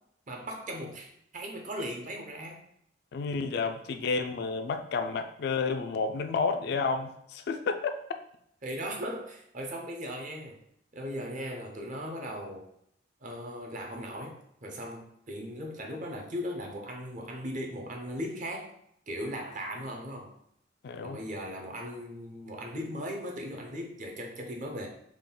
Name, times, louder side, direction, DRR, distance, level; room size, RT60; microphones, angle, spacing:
voice 1, 0.3-2.6 8.6-10.6 10.9-12.7 13.2-18.7 19.1-20.4 21.0-24.9, equal, 45° right, 1 dB, 0.6 m, -38 dB
voice 2, 3.1-7.8 20.8-21.2, left 4 dB, 60° left, 7 dB, 0.3 m, -31 dB
3.6 x 2.3 x 3.7 m, 0.72 s
head